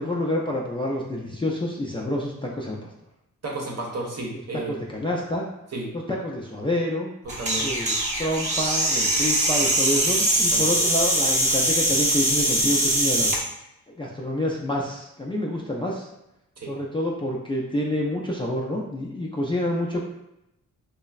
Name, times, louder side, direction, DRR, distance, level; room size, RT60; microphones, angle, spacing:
voice 1, 0.0-2.8 4.5-5.5 5.9-7.1 7.6-13.4 14.0-16.1 16.7-20.0, left 1 dB, 15° left, -3 dB, 0.3 m, -28 dB
voice 2, 3.4-4.8 5.7-5.9 7.2-7.7 10.5-10.7 16.6-16.7, right 2 dB, 50° right, -1 dB, 0.8 m, -32 dB
sound 1, 7.3-13.4, right 1 dB, 20° right, 0.8 m, -22 dB
3.2 x 2.0 x 2.3 m, 0.87 s
cardioid pair, 80°, 35 cm